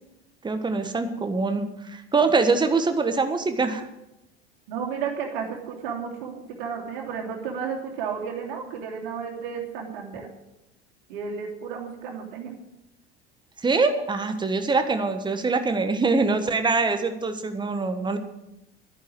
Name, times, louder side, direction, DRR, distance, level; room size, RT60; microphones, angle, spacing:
voice 1, 0.4-3.9 13.6-18.2, right 4 dB, 15° right, 8 dB, 1.5 m, -24 dB
voice 2, 4.7-10.3 11.1-12.6, right 6 dB, 55° right, 1 dB, 3.0 m, -33 dB
11.0 x 11.0 x 7.8 m, 0.90 s
figure-of-eight pair, 70°, 31 cm